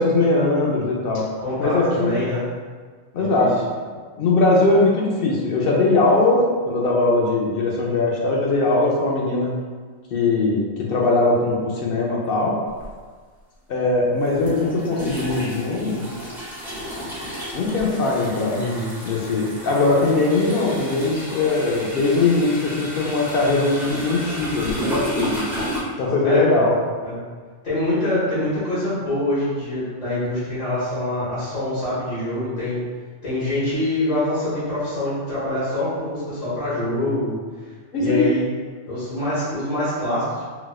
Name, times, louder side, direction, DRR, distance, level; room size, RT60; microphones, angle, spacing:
voice 1, 0.0-1.2 1.6-2.1 3.1-3.5 4.2-6.4 6.7-9.5 10.1-12.5 13.7-16.0 17.5-18.6 19.1-25.4 26.0-26.7 37.9-38.3, left 3 dB, 60° left, -2 dB, 0.7 m, -20 dB
voice 2, 1.4-2.4 3.2-3.5 18.5-18.9 26.2-26.7 27.0-27.2 27.6-32.8 33.2-37.4 38.0-38.5 38.9-40.4, left 1 dB, 80° left, -11 dB, 1.8 m, -25 dB
sound 1, 12.8-12.9 14.3-25.8, equal, ahead, 0.6 m, -32 dB
4.0 x 2.3 x 2.3 m, 1.5 s
omnidirectional pair, 1.3 m